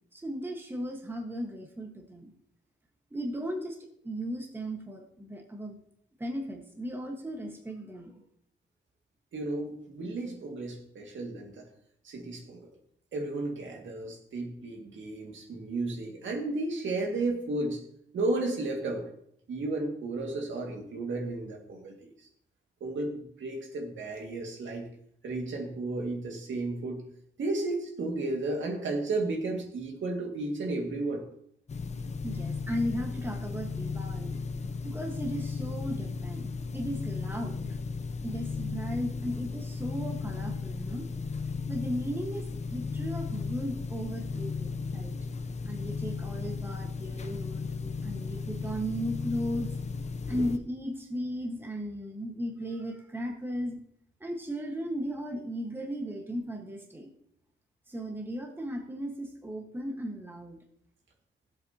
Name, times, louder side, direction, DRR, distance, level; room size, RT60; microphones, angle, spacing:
voice 1, 0.1-2.3 3.1-3.8 4.0-5.8 6.2-8.1 32.2-34.4 34.8-37.8 38.2-41.1 41.7-45.2 45.6-49.7 50.3-53.8 54.2-57.1 57.9-60.6, equal, 10° right, 2 dB, 1.4 m, -36 dB
voice 2, 9.3-11.7 12.0-12.7 13.1-17.8 18.1-19.1 19.5-22.1 22.8-24.9 25.2-27.0 27.4-31.2, right 2 dB, 80° right, 2 dB, 2.1 m, -33 dB
sound 1, 31.7-50.6, left 4 dB, 35° left, 0.6 m, -35 dB
16.0 x 7.8 x 2.8 m, 0.68 s
wide cardioid pair, 155°, 20 cm